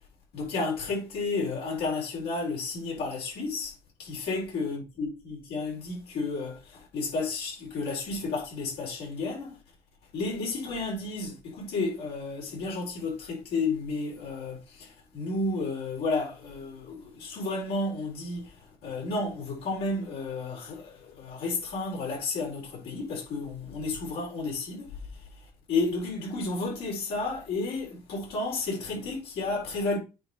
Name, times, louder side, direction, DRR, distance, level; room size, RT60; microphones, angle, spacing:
voice 1, 0.3-3.7 4.0-9.6 10.1-25.3 25.7-30.0, left 3 dB, 75° left, 4.7 m, -32 dB
8.3 x 3.5 x 6.3 m
cardioid pair, 110°, 17 cm